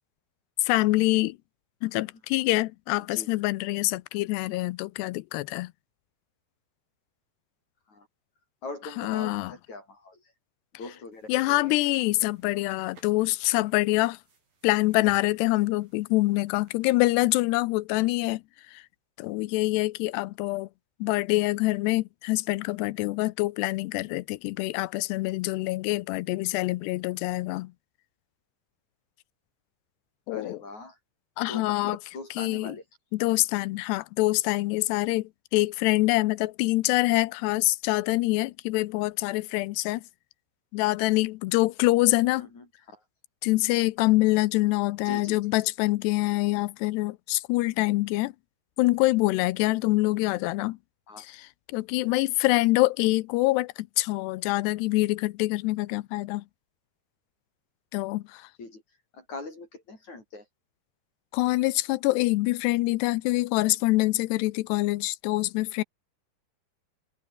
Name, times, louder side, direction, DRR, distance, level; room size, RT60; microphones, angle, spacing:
voice 1, 0.6-1.4 1.8-5.7 9.0-9.5 11.3-14.2 14.6-18.4 18.7-18.8 19.2-20.7 21.0-27.7 30.3-30.6 31.4-32.0 32.4-32.8 33.1-40.0 40.7-42.5 43.4-48.3 48.8-50.8 51.2-56.4 57.9-58.5 61.3-65.8, left 20 dB, 85° left, 2.8 m, -25 dB
voice 2, 8.6-10.3 10.8-11.3 11.6-11.7 30.3-31.0 31.5-32.8 42.3-43.0 45.0-45.4 51.1-51.3 58.6-58.8 59.1-60.4, left 3 dB, 45° left, 7.4 m, -41 dB
sound 1, 11.1-17.1, right 4 dB, 55° right, 9.3 m, -56 dB
omnidirectional pair, 4.8 m